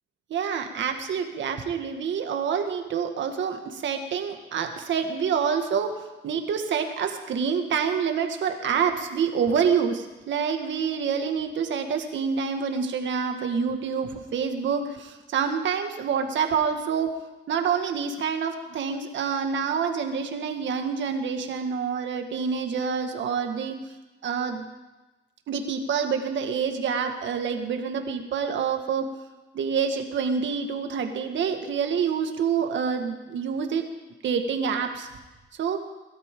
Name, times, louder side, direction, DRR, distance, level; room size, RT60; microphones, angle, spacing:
voice 1, 0.3-17.1 17.5-23.8 24.2-24.7 25.5-29.1 29.5-33.8 34.2-35.1 35.6-35.8, right 6 dB, 70° right, 5 dB, 1.9 m, -27 dB
22.0 x 12.5 x 3.8 m, 1.1 s
cardioid pair, 90°, 20 cm